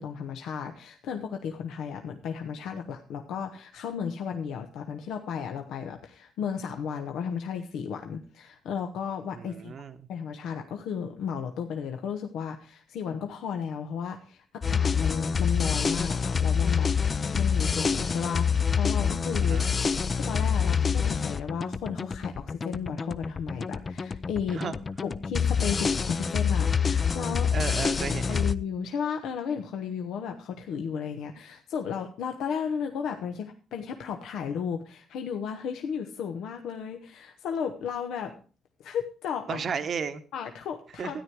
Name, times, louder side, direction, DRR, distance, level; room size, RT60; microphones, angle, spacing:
voice 1, 0.0-9.7 10.1-19.6 20.1-24.6 25.0-27.5 28.1-38.3 38.8-39.6 40.3-41.2, left 7 dB, 80° left, 4 dB, 1.1 m, -34 dB
voice 2, 9.4-10.0 19.4-19.7 24.5-24.7 27.5-28.5 39.5-40.2 41.0-41.2, right 6 dB, 55° right, 9 dB, 1.1 m, -33 dB
sound 1, 14.6-28.5, left 6 dB, 35° left, 0.6 m, -26 dB
13.0 x 9.6 x 4.6 m, 0.37 s
cardioid pair, 90°, 0 cm